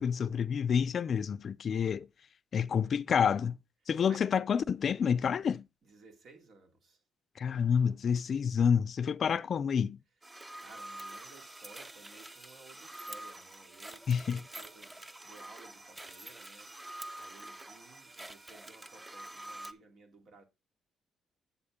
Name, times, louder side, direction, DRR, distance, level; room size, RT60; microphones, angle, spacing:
voice 1, 0.0-2.1 2.5-3.6 3.9-5.6 7.4-10.0 14.1-14.4, left 7 dB, 55° left, 0.4 m, -28 dB
voice 2, 5.8-7.0 10.6-16.7 17.2-20.4, right 3 dB, 60° right, 2.8 m, -57 dB
sound 1, 10.2-19.7, right 1 dB, 15° right, 0.8 m, -47 dB
9.7 x 7.2 x 3.6 m
cardioid pair, 90°, 0 cm